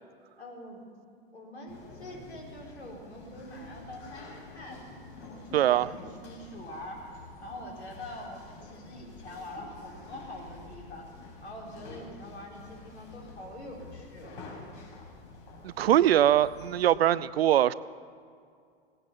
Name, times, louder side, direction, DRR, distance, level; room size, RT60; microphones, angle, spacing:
voice 1, 0.4-0.8 1.3-11.1 11.4-14.4, left 1 dB, 75° left, -1 dB, 4.3 m, -44 dB
sound 1, 1.7-16.9, left 3 dB, 55° left, 4.4 m, -48 dB
voice 2, 5.5-5.9 15.6-17.7, right 11 dB, 65° right, 18 dB, 0.5 m, -22 dB
17.5 x 9.2 x 7.3 m, 2.3 s
figure-of-eight pair, 95°, 32 cm